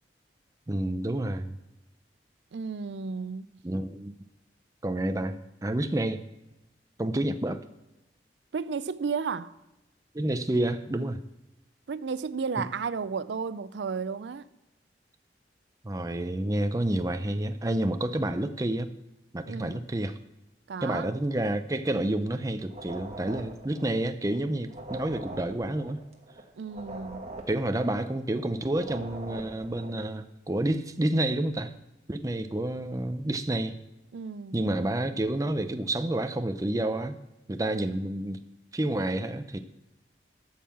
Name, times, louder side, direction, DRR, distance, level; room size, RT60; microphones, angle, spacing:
voice 1, 0.7-1.6 3.6-4.2 4.8-6.2 7.0-7.6 10.1-11.2 12.6-12.7 15.8-18.9 19.3-20.2 20.8-26.0 27.5-31.7 32.1-33.7 34.5-37.2 37.5-38.4 38.7-39.6, right 1 dB, 20° right, 0.5 m, -29 dB
voice 2, 2.5-3.5 8.5-9.5 11.9-14.5 19.5-19.8 20.7-21.1 26.6-27.4 34.1-34.6, right 5 dB, 85° right, 0.4 m, -33 dB
sound 1, 22.7-30.0, right 2 dB, 35° right, 1.3 m, -43 dB
13.0 x 5.5 x 7.3 m
head